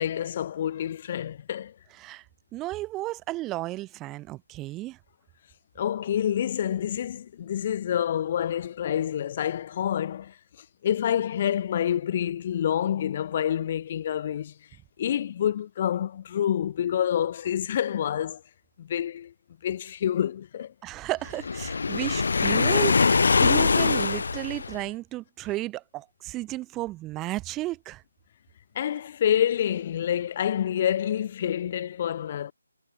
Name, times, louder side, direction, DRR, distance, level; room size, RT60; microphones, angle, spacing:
voice 1, 0.0-1.7 5.7-10.4 10.8-14.5 15.0-18.4 18.8-19.3 19.6-20.7 28.7-32.5, left 10 dB, 35° left, 1.5 m, -27 dB
voice 2, 2.5-5.0 20.8-28.0, right 17 dB, 15° right, 1.6 m, -33 dB
Waves surf, 21.4-24.9, left 4 dB, 55° left, 0.7 m, -23 dB
figure-of-eight pair, 150°, 0 cm